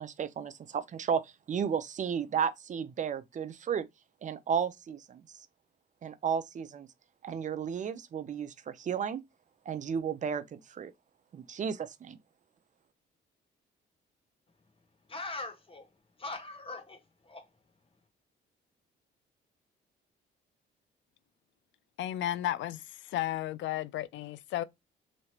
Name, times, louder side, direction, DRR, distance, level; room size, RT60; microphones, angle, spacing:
voice 1, 0.0-3.9 4.2-5.4 6.0-6.9 7.2-9.2 9.7-10.9 11.3-12.2, right 7 dB, 40° right, 0.5 m, -33 dB
voice 2, 15.1-17.5, left 2 dB, 25° left, 1.1 m, -42 dB
voice 3, 22.0-24.6, left 13 dB, 70° left, 0.4 m, -33 dB
3.1 x 2.9 x 2.8 m
cardioid pair, 90°, 20 cm